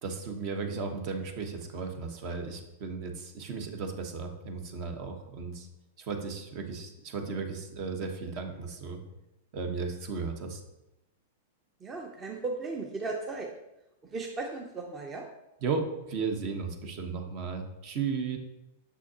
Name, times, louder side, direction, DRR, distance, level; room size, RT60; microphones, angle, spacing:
voice 1, 0.0-5.7 6.0-9.0 9.5-10.6 15.6-18.4, right 5 dB, 50° right, 5 dB, 1.1 m, -35 dB
voice 2, 11.8-13.5 14.0-15.2, right 3 dB, 25° right, 2 dB, 0.7 m, -36 dB
6.4 x 6.1 x 2.9 m, 0.91 s
hypercardioid pair, 120°, 0 cm